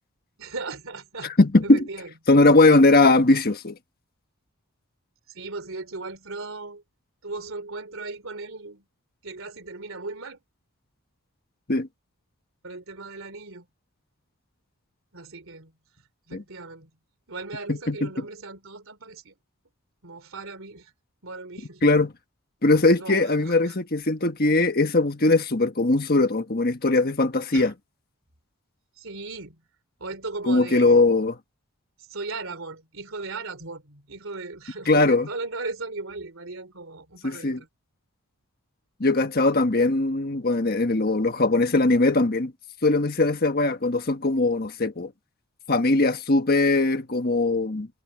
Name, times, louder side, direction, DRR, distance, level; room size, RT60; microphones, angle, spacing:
voice 1, 0.4-1.4 1.6-2.1 5.3-6.8 7.2-8.9 9.2-10.4 12.6-13.7 15.1-15.7 16.3-16.9 17.3-19.3 20.0-20.9 21.2-21.8 22.9-23.8 27.5-27.7 29.0-29.6 30.0-31.0 32.0-37.7, right 3 dB, 65° right, 3.5 m, -37 dB
voice 2, 1.4-1.8 2.3-3.8 11.7-11.9 16.3-16.4 17.7-18.2 21.8-22.1 22.6-27.7 30.5-31.4 34.9-35.3 37.2-37.6 39.0-42.5 42.8-45.1 45.7-47.9, left 2 dB, 45° left, 1.4 m, -20 dB
head